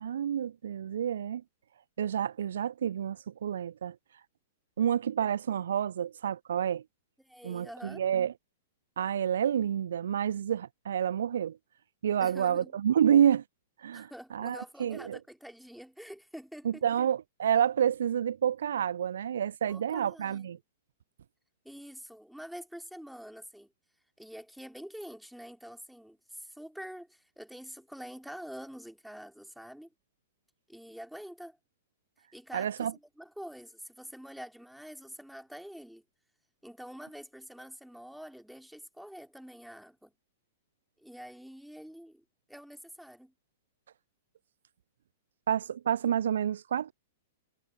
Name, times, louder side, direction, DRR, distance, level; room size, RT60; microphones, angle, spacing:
voice 1, 0.0-1.4 2.0-4.0 4.8-6.8 7.4-8.3 9.0-11.6 12.0-13.4 13.8-15.2 16.7-20.6 32.5-32.9 45.5-46.9, right 9 dB, 60° right, 0.4 m, -29 dB
voice 2, 7.2-8.0 12.2-12.7 13.9-16.9 19.7-20.5 21.6-23.7 24.2-29.9 30.7-31.6 32.3-36.0 36.6-40.1 41.0-43.3, equal, ahead, 3.5 m, -46 dB
figure-of-eight pair, 105°, 0 cm